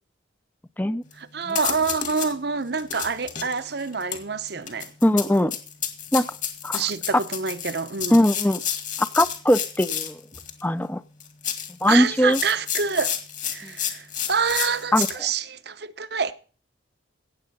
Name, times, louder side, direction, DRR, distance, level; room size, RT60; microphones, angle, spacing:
sound 1, 1.1-1.2 1.5-2.3 2.7-10.6 11.2-15.1, left 9 dB, 40° left, 2.0 m, -31 dB
voice 1, 1.2-4.9 6.7-8.2 11.9-13.2 13.4-16.3, right 5 dB, 55° right, 0.8 m, -27 dB
voice 2, 5.0-5.5 6.1-6.2 6.6-6.8 8.1-8.6 9.1-10.1 10.6-11.0 11.8-12.4 13.6-13.7 14.9-15.1, left 1 dB, 10° left, 0.5 m, -20 dB
17.0 x 8.0 x 5.4 m
head